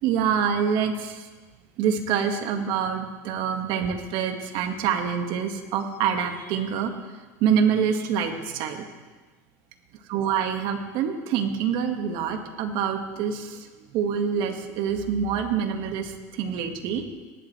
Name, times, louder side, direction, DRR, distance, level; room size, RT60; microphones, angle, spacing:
voice 1, 0.0-1.3 1.8-6.9 7.4-8.9 10.1-13.7 13.9-17.1, right 7 dB, 60° right, 5 dB, 1.8 m, -26 dB
18.5 x 11.5 x 3.3 m, 1.3 s
supercardioid pair, 110°, 9 cm